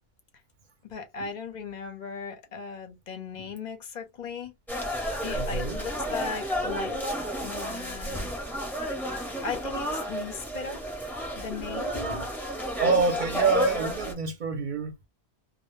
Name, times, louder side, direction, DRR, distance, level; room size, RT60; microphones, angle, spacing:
voice 1, 0.8-4.5 5.2-7.0 7.4-8.3 9.4-10.8 11.3-12.3, left 5 dB, 50° left, 0.6 m, -37 dB
sound 1, 4.7-14.1, equal, ahead, 0.7 m, -32 dB
voice 2, 5.3-5.8 12.8-15.1, right 3 dB, 50° right, 0.7 m, -26 dB
2.1 x 2.1 x 3.0 m
omnidirectional pair, 1.2 m